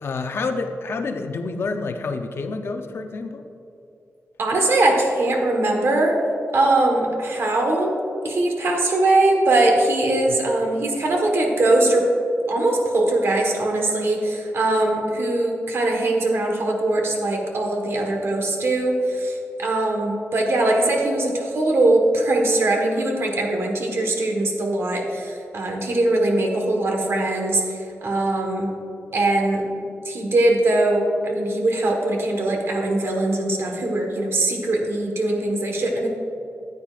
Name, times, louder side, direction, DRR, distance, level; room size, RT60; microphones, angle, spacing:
voice 1, 0.0-3.4, left 3 dB, 55° left, 5 dB, 0.7 m, -28 dB
voice 2, 4.4-6.2 6.5-7.9 8.2-12.1 12.5-28.8 29.1-29.7 30.0-36.1, right 2 dB, 55° right, 1 dB, 1.4 m, -21 dB
14.0 x 8.8 x 2.5 m, 2.7 s
wide cardioid pair, 160°, 5 cm